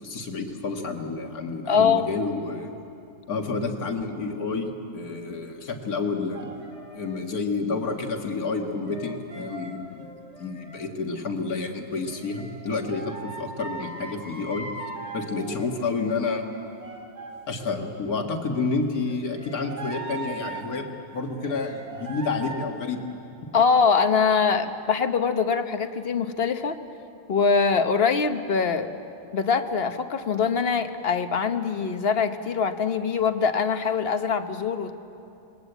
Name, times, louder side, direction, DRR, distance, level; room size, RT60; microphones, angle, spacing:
voice 1, 0.0-2.7 3.3-6.6 6.9-10.1 10.4-14.7 15.1-16.4 17.5-20.9 21.1-23.0, left 4 dB, 75° left, 3 dB, 2.3 m, -29 dB
voice 2, 1.7-2.1 23.5-26.8 27.3-28.9 29.3-34.9, left 5 dB, 45° left, 9 dB, 1.1 m, -23 dB
sound 1, 6.3-7.3 8.4-10.8 11.9-17.9 19.0-20.7 21.4-22.6, right 3 dB, 45° right, 3.0 m, -40 dB
27.0 x 21.0 x 8.1 m, 2.8 s
omnidirectional pair, 1.6 m